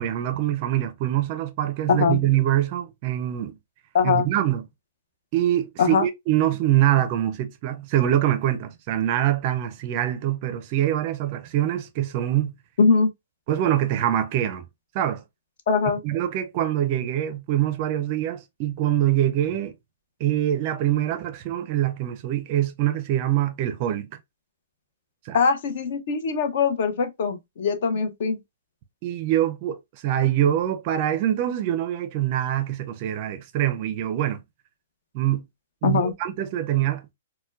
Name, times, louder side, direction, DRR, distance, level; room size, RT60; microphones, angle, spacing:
voice 1, 0.0-3.6 4.0-4.7 5.3-12.5 13.5-14.6 14.9-15.2 16.0-19.7 20.2-24.2 25.3-25.4 29.0-34.4 35.1-35.4 35.8-37.1, right 12 dB, 35° right, 0.4 m, -24 dB
voice 2, 1.9-2.2 3.9-4.3 5.8-6.1 12.8-13.1 15.7-16.0 25.3-28.4 35.8-36.1, left 5 dB, 55° left, 0.7 m, -22 dB
4.2 x 2.1 x 2.4 m
hypercardioid pair, 160°, 0 cm